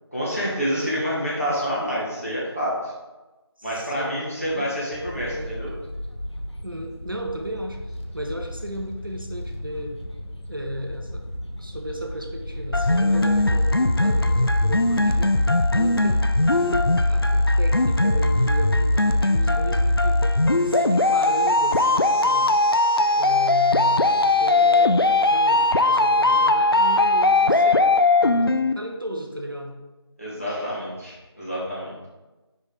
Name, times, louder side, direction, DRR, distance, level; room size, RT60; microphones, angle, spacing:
voice 1, 0.1-2.9 3.6-5.7 30.2-32.1, equal, 30° left, -7 dB, 1.8 m, -28 dB
voice 2, 3.6-4.1 4.6-4.7 5.3-5.6 6.6-10.0 10.5-11.3 11.6-15.4 15.7-20.2 20.6-22.5 23.2-27.9 28.7-29.8, right 1 dB, 50° right, 3 dB, 0.7 m, -34 dB
sound 1, 4.9-16.9, left 1 dB, 85° left, 1.0 m, -35 dB
sound 2, 12.7-28.7, left 2 dB, 60° left, 0.4 m, -19 dB
5.1 x 4.5 x 4.7 m, 1.1 s
figure-of-eight pair, 180°, 14 cm